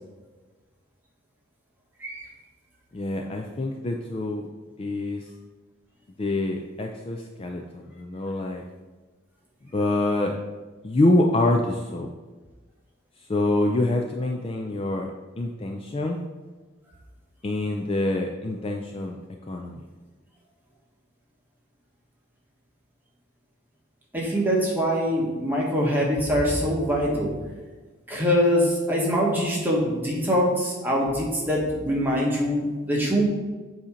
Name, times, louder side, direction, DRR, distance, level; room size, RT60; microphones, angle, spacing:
voice 1, 2.9-4.5 4.8-5.2 6.2-8.6 9.7-10.3 10.8-12.1 13.3-15.1 15.4-16.2 17.4-19.2 19.5-19.8, left 2 dB, 30° left, 2 dB, 0.3 m, -25 dB
voice 2, 24.1-27.3 28.1-33.2, equal, 10° right, -3 dB, 1.2 m, -23 dB
7.7 x 2.8 x 5.0 m, 1.3 s
head